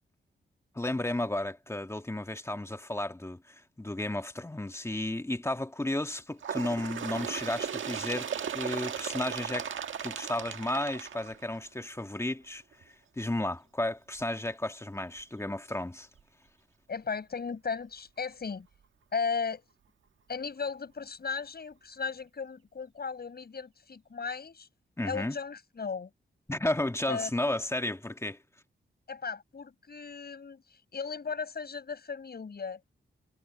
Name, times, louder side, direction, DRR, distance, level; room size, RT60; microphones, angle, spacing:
voice 1, 0.8-8.3 8.5-9.7 10.0-12.6 13.2-16.1 25.0-25.4 26.5-28.4, left 1 dB, 15° left, 1.7 m, -33 dB
Bird, 6.4-11.8 12.7-12.8 13.2-13.3 14.2-14.3 15.2-15.3 16.2-16.3, right 8 dB, 85° right, 1.7 m, -36 dB
voice 2, 16.9-18.7 19.1-19.6 20.3-24.7 25.0-26.1 27.1-27.3 29.1-32.8, left 5 dB, 55° left, 7.6 m, -36 dB
cardioid pair, 75°, 20 cm